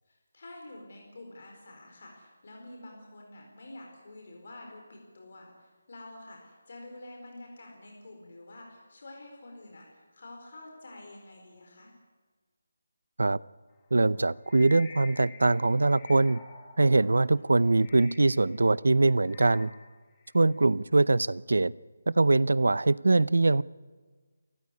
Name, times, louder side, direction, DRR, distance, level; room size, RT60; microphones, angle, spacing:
voice 1, 0.1-11.9 20.4-20.9, left 2 dB, 40° left, 1 dB, 4.4 m, -48 dB
voice 2, 13.9-16.4 16.8-19.7 20.3-21.7 22.1-23.6, right 2 dB, 90° right, 21 dB, 0.6 m, -23 dB
sound 1, 14.1-18.6 19.0-20.6, left 5 dB, 10° left, 1.6 m, -51 dB
28.5 x 14.0 x 9.8 m, 1.4 s
figure-of-eight pair, 180°, 0 cm